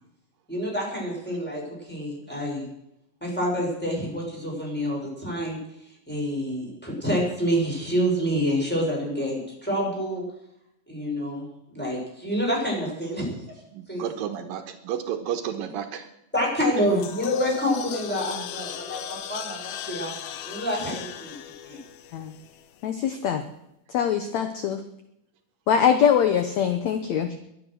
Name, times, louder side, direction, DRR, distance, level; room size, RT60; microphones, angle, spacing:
voice 1, 0.5-1.6 1.9-2.7 3.2-5.6 6.1-10.2 10.9-13.3 13.9-14.1 16.3-20.1 20.4-21.3 21.7-21.8, equal, ahead, -3 dB, 6.5 m, -27 dB
voice 2, 13.7-16.1 16.8-16.9, right 9 dB, 75° right, 7 dB, 2.8 m, -32 dB
sound 1, 16.6-22.9, left 10 dB, 85° left, 2.8 m, -38 dB
voice 3, 22.8-23.4 23.9-24.8 25.7-27.4, left 8 dB, 65° left, 8 dB, 1.8 m, -23 dB
22.5 x 10.0 x 6.4 m, 0.82 s
omnidirectional pair, 4.2 m